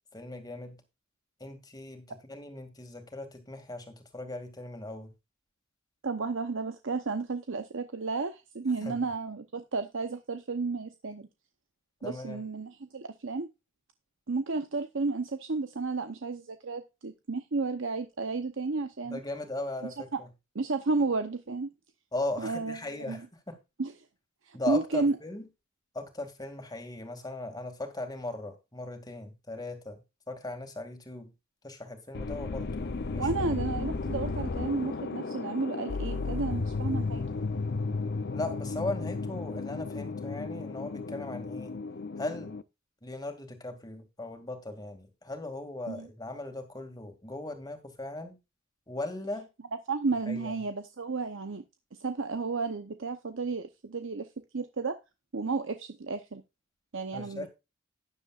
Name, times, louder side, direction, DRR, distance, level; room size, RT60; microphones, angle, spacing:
voice 1, 0.1-0.8 1.4-5.1 8.8-9.0 12.0-12.4 19.1-20.3 22.1-23.6 24.5-25.5 25.9-30.0 30.3-31.3 31.6-33.3 38.3-41.7 42.2-42.5 43.0-48.4 48.9-49.5 50.3-50.5 57.1-57.5, left 2 dB, 20° left, 2.3 m, -38 dB
voice 2, 6.0-11.3 12.0-13.5 14.3-19.2 20.1-20.2 20.5-21.7 22.4-22.8 23.1-23.2 23.8-23.9 24.4-25.1 33.2-37.2 45.9-46.1 49.9-51.6 52.0-54.3 54.5-55.0 55.3-56.4 56.9-57.5, right 3 dB, 60° right, 0.8 m, -32 dB
sound 1, 32.1-42.6, left 3 dB, 50° left, 0.6 m, -34 dB
12.0 x 10.0 x 2.4 m
head